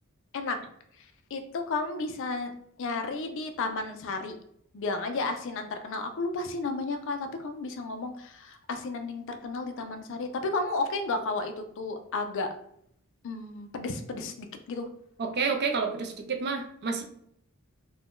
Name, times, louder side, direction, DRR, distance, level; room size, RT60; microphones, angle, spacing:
voice 1, 1.3-2.5 2.8-4.4 4.7-12.5 13.2-14.9, left 3 dB, 60° left, 7 dB, 0.4 m, -32 dB
voice 2, 15.2-17.0, right 5 dB, 50° right, 4 dB, 0.4 m, -29 dB
2.5 x 2.2 x 3.5 m, 0.69 s
head